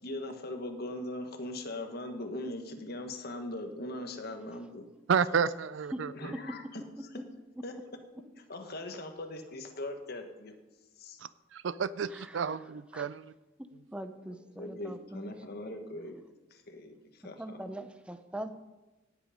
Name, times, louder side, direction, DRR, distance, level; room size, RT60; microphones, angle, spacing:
voice 1, 0.0-4.8 6.1-6.8 7.6-7.7 8.5-10.6 11.0-11.2 14.6-16.2 16.5-17.4, left 1 dB, 55° left, 5 dB, 1.5 m, -40 dB
voice 2, 5.1-6.1 11.5-13.3, right 6 dB, 70° right, 17 dB, 0.4 m, -30 dB
voice 3, 12.1-12.6 12.9-13.1 13.6-15.3 17.4-18.7, right 1 dB, 5° right, 9 dB, 0.8 m, -42 dB
17.5 x 8.3 x 5.2 m, 1.1 s
head